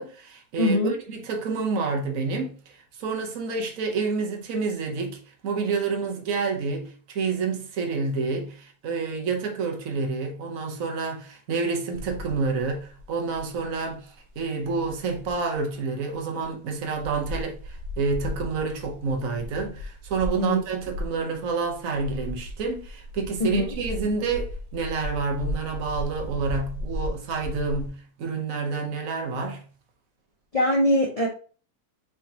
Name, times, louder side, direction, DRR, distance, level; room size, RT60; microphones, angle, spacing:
voice 1, 0.0-29.6, right 4 dB, 55° right, 1.3 m, -29 dB
voice 2, 0.6-0.9 20.3-20.6 23.4-23.7 30.5-31.3, left 1 dB, 65° left, 0.3 m, -22 dB
sound 1, 11.9-15.6 16.1-16.2 16.4-16.5 16.8-27.9, equal, 75° right, 1.8 m, -36 dB
5.1 x 3.6 x 2.8 m
omnidirectional pair, 1.7 m